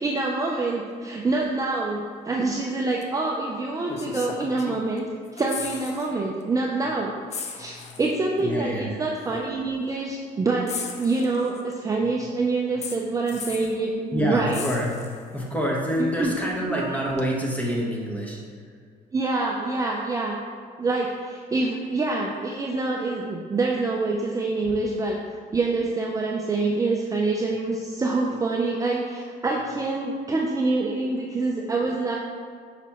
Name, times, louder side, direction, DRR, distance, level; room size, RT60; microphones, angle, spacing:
voice 1, 0.0-7.1 7.6-10.7 11.0-14.6 16.2-16.3 16.7-16.9 19.1-20.4 20.8-25.2 25.5-32.2, right 3 dB, 20° right, -1 dB, 0.5 m, -26 dB
sound 1, 3.0-3.1 3.9-5.0 5.3-6.1 6.4-6.6 7.3-8.2 9.2-9.3 10.7-11.7 12.8-13.8 14.5-15.4 17.2-17.3, left 5 dB, 40° left, 0.6 m, -36 dB
voice 2, 7.6-8.0 8.4-9.0 9.9-10.0 12.0-12.1 14.1-14.9 15.3-18.6 30.9-31.7, equal, 10° left, -2 dB, 1.2 m, -28 dB
5.8 x 5.7 x 3.0 m, 2.1 s
cardioid pair, 110°, 17 cm